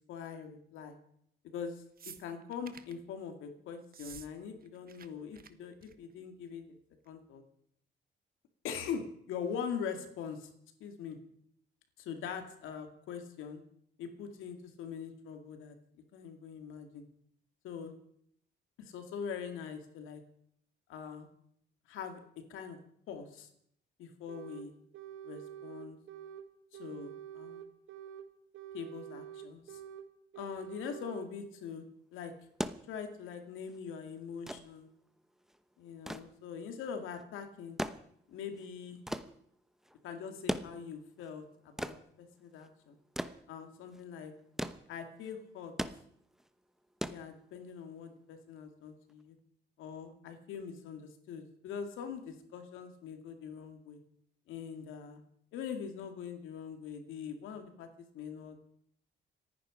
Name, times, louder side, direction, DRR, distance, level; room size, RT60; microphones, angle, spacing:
voice 1, 0.1-1.0 1.4-1.8 2.2-6.6 7.1-7.4 8.6-10.5 10.8-11.2 12.0-13.6 14.0-15.7 16.1-17.1 17.6-17.9 18.8-20.2 20.9-21.3 21.9-22.2 22.5-22.8 23.1-23.5 24.0-24.7 25.2-26.0 26.8-27.6 28.7-29.8 30.4-31.8 32.1-32.3 32.9-34.9 35.8-37.8 38.3-39.0 40.0-43.0 43.5-44.3 44.9-45.7 47.0-49.4 49.8-54.0 54.5-55.2 55.5-57.9 58.1-58.6, left 7 dB, 90° left, 6 dB, 2.3 m, -42 dB
sound 1, 2.0-3.0 3.8-4.3 4.6-5.1 5.3-5.5 5.8-6.1 7.1-7.2, right 7 dB, 50° right, 1.2 m, -51 dB
sound 2, 24.3-24.7 24.9-26.5 26.7-28.3 28.5-30.1 30.3-31.3, right 10 dB, 85° right, 1.5 m, -47 dB
sound 3, 32.4-47.9 49.1-49.2, equal, ahead, 0.9 m, -41 dB
27.5 x 9.8 x 5.1 m, 0.70 s
cardioid pair, 90°, 20 cm